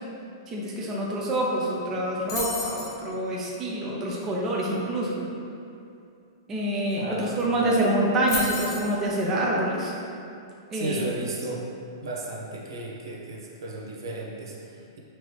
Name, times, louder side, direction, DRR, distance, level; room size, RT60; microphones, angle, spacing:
voice 1, 0.5-5.1 6.5-9.9 10.7-11.0, right 1 dB, 20° right, -4 dB, 0.6 m, -26 dB
sound 1, 2.3-3.0 6.9-7.0 7.2-7.6 8.3-8.9, left 3 dB, 65° left, 1.2 m, -32 dB
voice 2, 10.7-11.6 12.0-15.0, right 2 dB, 80° right, -3 dB, 0.7 m, -35 dB
4.4 x 2.9 x 3.2 m, 2.6 s
hypercardioid pair, 135°, 2 cm